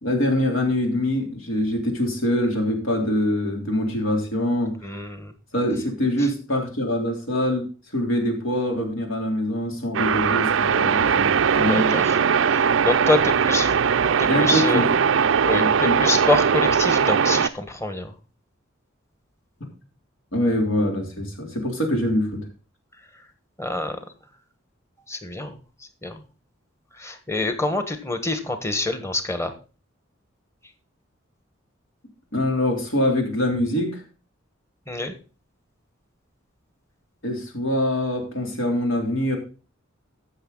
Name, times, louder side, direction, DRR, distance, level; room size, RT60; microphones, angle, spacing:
voice 1, 0.0-4.7 5.5-7.7 7.9-11.3 11.6-11.9 14.3-14.8 15.4-15.9 20.3-22.4 32.3-34.0 37.2-39.4, left 1 dB, 75° left, 2 dB, 3.4 m, -24 dB
voice 2, 4.8-5.3 11.7-12.2 12.5-13.8 14.2-14.8 15.5-18.1 23.6-24.0 25.1-25.6 26.0-26.2 27.0-29.5 34.9-35.1, left 2 dB, 15° left, 8 dB, 1.3 m, -26 dB
sound 1, 9.9-17.5, right 6 dB, 65° right, 0.5 m, -20 dB
14.5 x 6.6 x 3.9 m, 0.35 s
head